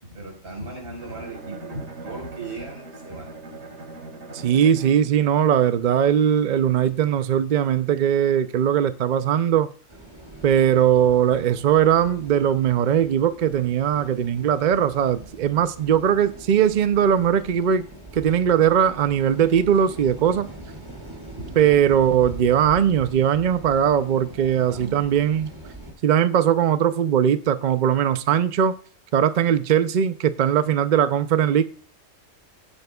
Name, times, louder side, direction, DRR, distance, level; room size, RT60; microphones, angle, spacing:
voice 1, 0.0-3.3 21.4-21.5 24.4-25.0, right 2 dB, 45° right, 5.0 m, -37 dB
Bowed string instrument, 1.0-5.4, right 2 dB, 85° right, 2.1 m, -39 dB
voice 2, 4.3-9.7 10.4-17.9 18.1-20.5 21.6-25.5 26.0-28.8 29.1-31.6, right 9 dB, 60° right, 0.4 m, -20 dB
sound 1, 9.9-25.9, right 1 dB, 20° right, 2.3 m, -42 dB
16.5 x 8.5 x 2.3 m
omnidirectional pair, 1.4 m